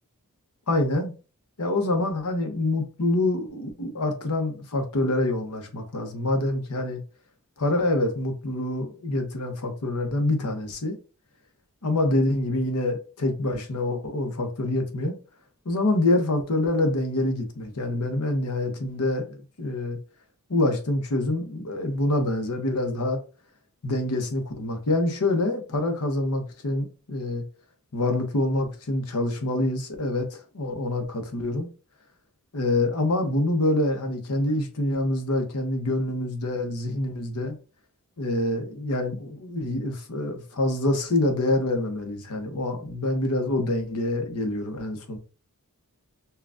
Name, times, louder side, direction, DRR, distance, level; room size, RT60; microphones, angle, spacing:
voice 1, 0.7-1.1 1.6-7.0 7.6-11.0 11.8-15.2 15.6-20.0 20.5-23.2 23.8-27.4 27.9-31.7 32.5-37.6 38.2-45.2, left 1 dB, 85° left, 0.9 m, -26 dB
5.5 x 2.3 x 2.5 m
head